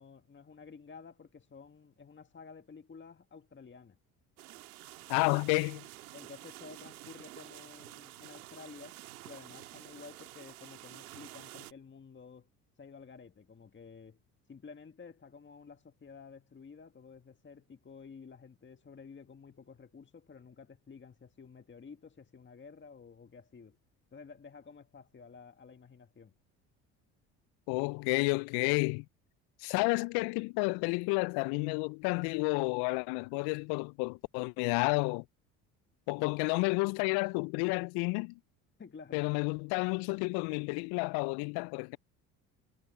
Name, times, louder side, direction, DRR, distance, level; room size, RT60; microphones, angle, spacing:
voice 1, 0.0-4.0 6.1-9.0 9.2-12.5 12.8-14.2 14.5-23.8 24.1-26.3 36.2-36.3 38.8-39.2, left 5 dB, 25° left, 1.7 m, -52 dB
sound 1, 4.4-11.7, right 16 dB, 85° right, 2.0 m, -50 dB
voice 2, 5.1-5.8 27.7-29.0 29.6-35.2 36.1-38.4 39.1-42.0, left 30 dB, 65° left, 0.5 m, -31 dB
hypercardioid pair, 65°, 42 cm